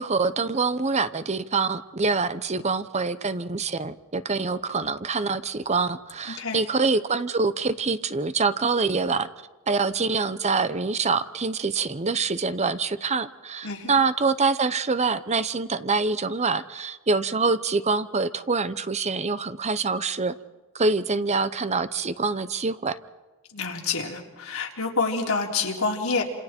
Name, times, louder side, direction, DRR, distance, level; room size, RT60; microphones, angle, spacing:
voice 1, 0.0-9.3 9.7-20.3 20.7-23.0, right 4 dB, 35° right, 13 dB, 0.9 m, -25 dB
voice 2, 13.6-13.9 23.5-26.2, left 4 dB, 85° left, 0 dB, 3.7 m, -27 dB
28.5 x 27.5 x 4.5 m, 1.2 s
head